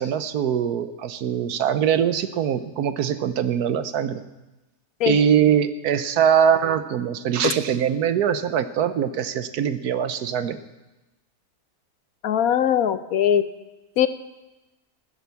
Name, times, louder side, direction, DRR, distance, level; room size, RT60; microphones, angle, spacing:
voice 1, 0.0-4.2 5.0-10.6, right 8 dB, 70° right, 12 dB, 1.2 m, -22 dB
voice 2, 12.2-13.5 14.0-14.1, left 9 dB, 70° left, 12 dB, 1.0 m, -21 dB
15.0 x 9.6 x 6.9 m, 1.0 s
omnidirectional pair, 1.7 m